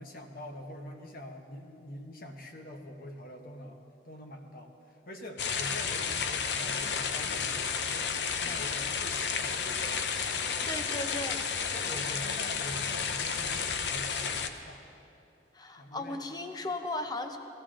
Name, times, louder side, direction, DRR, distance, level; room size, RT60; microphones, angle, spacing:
voice 1, 0.0-11.0 11.8-14.8 15.8-16.2, left 1 dB, 50° left, 3 dB, 1.1 m, -45 dB
sound 1, 5.4-14.5, left 6 dB, 70° left, 0.7 m, -32 dB
voice 2, 10.7-11.9 15.5-17.4, left 2 dB, 20° left, 6 dB, 0.7 m, -37 dB
18.5 x 13.5 x 3.8 m, 2.8 s
head